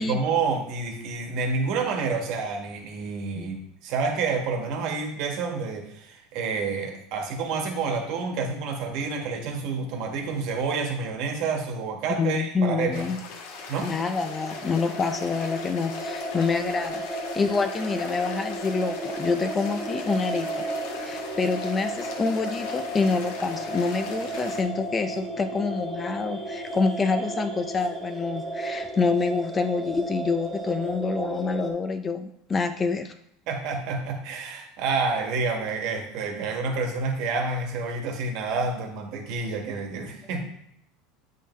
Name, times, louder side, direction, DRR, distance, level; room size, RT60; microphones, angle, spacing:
voice 1, 0.0-3.5 3.8-13.1 13.7-13.9 33.5-40.5, right 4 dB, 55° right, 3 dB, 1.5 m, -29 dB
voice 2, 12.2-13.2 13.8-17.1 17.4-20.7 21.0-33.1, left 4 dB, 20° left, 9 dB, 0.4 m, -27 dB
sound 1, 12.9-24.6, left 5 dB, 70° left, 1.2 m, -41 dB
sound 2, 13.5-31.7, right 1 dB, ahead, 1.2 m, -34 dB
8.2 x 5.5 x 3.1 m, 0.73 s
supercardioid pair, 155°, 0 cm